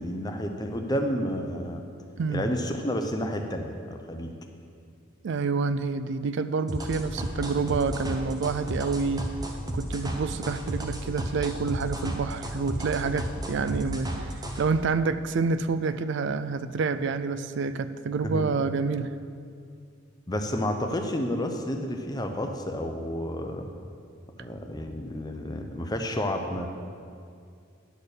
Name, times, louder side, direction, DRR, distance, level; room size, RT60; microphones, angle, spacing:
voice 1, 0.0-1.8 2.3-4.3 18.2-18.6 20.3-23.7 24.4-26.7, equal, 20° left, 4 dB, 0.6 m, -30 dB
voice 2, 5.2-9.3 9.7-14.3 14.6-19.1, right 4 dB, 60° right, 12 dB, 0.4 m, -28 dB
sound 1, 6.7-14.6, right 1 dB, 20° right, 0.8 m, -33 dB
10.5 x 4.3 x 6.7 m, 2.3 s
head